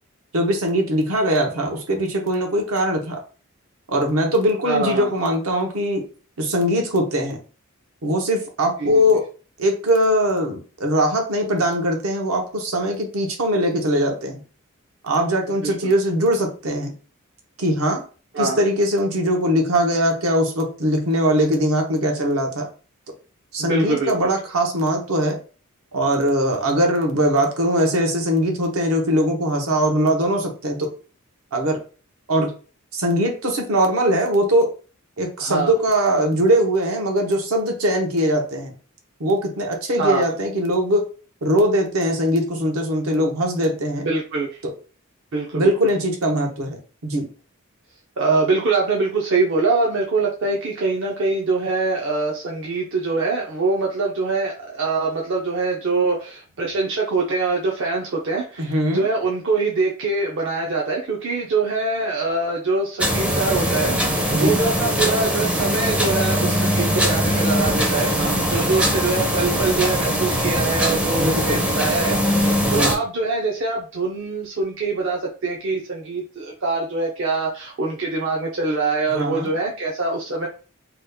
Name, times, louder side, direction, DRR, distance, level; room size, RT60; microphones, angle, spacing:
voice 1, 0.3-3.2 3.9-6.1 6.4-7.4 8.0-9.2 9.6-14.4 15.0-16.9 17.6-18.0 18.4-22.7 23.5-25.4 25.9-30.9 31.5-31.8 32.3-32.5 32.9-34.7 35.2-38.7 39.2-41.1 41.4-44.1 44.6-44.7 45.5-47.3 58.6-59.1 64.3-64.6 68.2-68.7 71.2-71.6 72.6-72.9 79.1-79.5, equal, 75° right, 2 dB, 0.9 m, -21 dB
voice 2, 4.6-5.1 8.8-9.2 15.6-15.9 18.3-18.6 23.6-24.1 35.4-35.7 40.0-40.2 44.0-44.6 45.3-45.7 48.2-80.5, right 3 dB, 60° right, -1 dB, 0.6 m, -24 dB
sound 1, 63.0-73.0, equal, 5° right, 0.4 m, -21 dB
2.9 x 2.3 x 3.4 m, 0.37 s
head